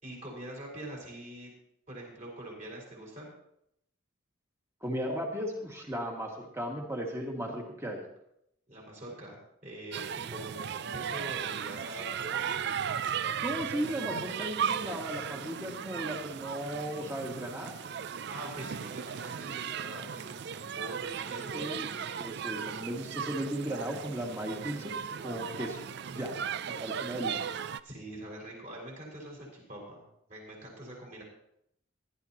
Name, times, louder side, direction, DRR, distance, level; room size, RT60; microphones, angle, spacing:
voice 1, 0.0-1.5 1.9-3.3 8.7-12.4 18.3-21.7 27.8-31.2, right 1 dB, 35° right, -3 dB, 5.0 m, -44 dB
voice 2, 4.8-8.0 13.4-17.7 21.5-25.0 25.2-25.8 26.1-26.3 26.8-27.4, equal, 15° right, 0 dB, 2.0 m, -36 dB
sound 1, 9.9-27.8, right 7 dB, 55° right, 0.4 m, -36 dB
18.0 x 12.0 x 3.0 m, 0.76 s
head